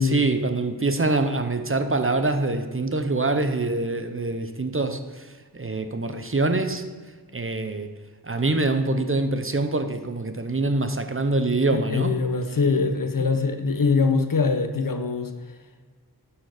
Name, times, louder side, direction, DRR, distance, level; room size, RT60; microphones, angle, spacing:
voice 1, 0.0-6.9 7.3-7.9 8.2-12.2 13.2-13.3, right 2 dB, 35° right, 8 dB, 0.6 m, -25 dB
voice 2, 11.7-15.3, left 4 dB, 55° left, 7 dB, 0.7 m, -23 dB
10.5 x 4.4 x 4.8 m, 1.4 s
wide cardioid pair, 55°, 40 cm